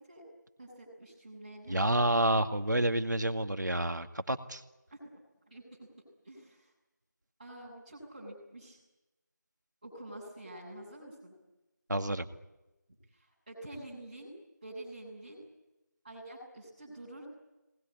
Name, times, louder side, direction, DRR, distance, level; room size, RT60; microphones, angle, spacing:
voice 1, 0.6-1.8 4.9-5.0 5.5-5.9 6.2-6.7 7.4-8.8 9.8-11.3 13.1-14.3 14.6-15.4 16.0-17.3, right 1 dB, 25° right, -5 dB, 6.8 m, -47 dB
voice 2, 1.7-4.6 11.9-12.3, right 1 dB, 70° right, 8 dB, 2.1 m, -29 dB
24.0 x 20.0 x 9.8 m, 1.0 s
figure-of-eight pair, 175°, 10 cm